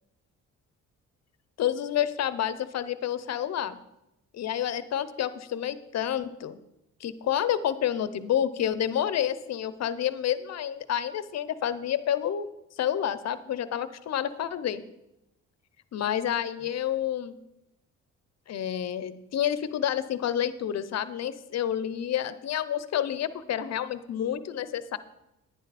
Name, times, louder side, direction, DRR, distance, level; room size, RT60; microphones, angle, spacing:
voice 1, 1.6-3.8 4.3-6.6 7.0-12.5 12.8-14.8 15.9-17.4 18.5-25.0, left 10 dB, 60° left, 14 dB, 0.8 m, -29 dB
10.5 x 10.5 x 4.2 m, 0.89 s
cardioid pair, 90°, 30 cm